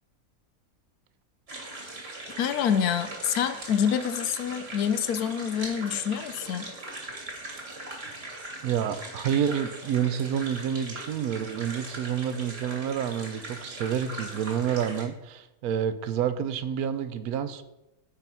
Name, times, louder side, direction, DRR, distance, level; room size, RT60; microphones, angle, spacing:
sound 1, 1.5-15.0, right 2 dB, 45° right, 2.0 m, -40 dB
voice 1, 2.4-6.7, left 8 dB, 85° left, 11 dB, 1.2 m, -27 dB
voice 2, 8.6-17.6, right 9 dB, 85° right, 12 dB, 1.1 m, -29 dB
9.1 x 4.5 x 5.5 m, 0.93 s
omnidirectional pair, 1.6 m